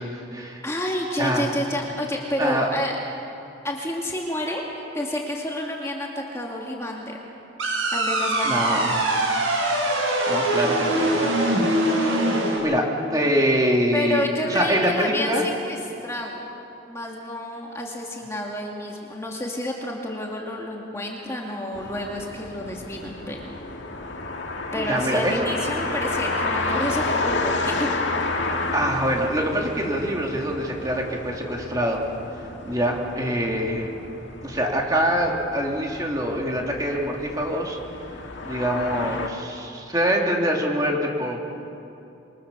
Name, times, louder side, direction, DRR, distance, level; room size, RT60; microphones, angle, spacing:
voice 1, 0.0-0.6 1.2-1.4 2.4-2.7 8.4-8.9 9.8-9.9 10.3-11.4 12.2-15.4 24.8-25.4 28.7-32.0 32.4-33.9 34.4-37.8 38.4-41.4, equal, 20° right, 0 dB, 2.7 m, -24 dB
voice 2, 0.6-2.9 3.6-4.7 4.9-7.2 7.9-8.9 13.9-15.8 16.0-16.4 16.9-23.4 24.7-27.9, left 1 dB, 15° left, -1 dB, 2.3 m, -29 dB
sound 1, 7.6-12.6, right 1 dB, 85° right, 7.9 m, -22 dB
sound 2, 21.7-39.3, left 2 dB, 70° left, 2.0 m, -31 dB
26.5 x 24.0 x 7.0 m, 2.9 s
head